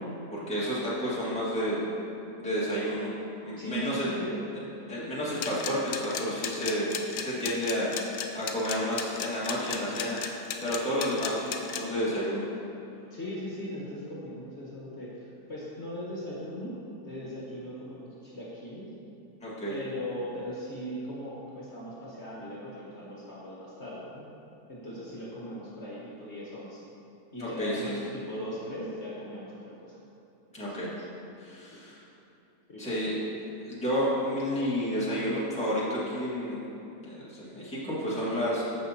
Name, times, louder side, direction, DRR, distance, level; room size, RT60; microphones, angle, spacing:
voice 1, 0.3-1.8 2.4-3.1 3.4-4.1 4.9-7.9 8.3-10.2 10.6-12.5 19.4-19.7 27.4-27.9 30.5-30.9 31.4-32.0 32.8-33.1 33.6-36.6 37.0-38.6, equal, 5° left, -9 dB, 1.7 m, -30 dB
voice 2, 3.6-4.4 13.1-16.8 17.0-18.9 19.7-24.2 24.7-26.8 27.3-30.0 30.6-31.0 31.4-31.6 32.7-32.8, equal, 45° left, -7 dB, 1.6 m, -39 dB
sound 1, 5.4-11.8, left 8 dB, 65° left, 0.9 m, -34 dB
11.0 x 7.0 x 2.9 m, 2.8 s
omnidirectional pair, 1.7 m